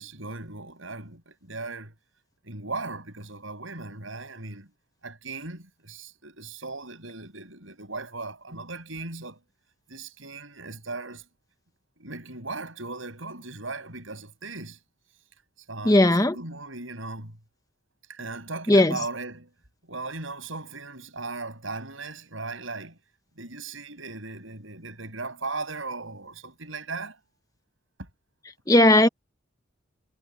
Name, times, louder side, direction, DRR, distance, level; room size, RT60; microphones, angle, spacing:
voice 1, 0.0-1.9 2.4-4.7 5.0-9.4 9.9-11.2 12.0-14.8 15.7-17.3 18.1-19.5 19.9-23.0 23.4-27.1, right 3 dB, 75° right, 6.7 m, -37 dB
voice 2, 15.8-16.4 18.7-19.0 28.7-29.1, left 1 dB, 15° left, 0.8 m, -17 dB
head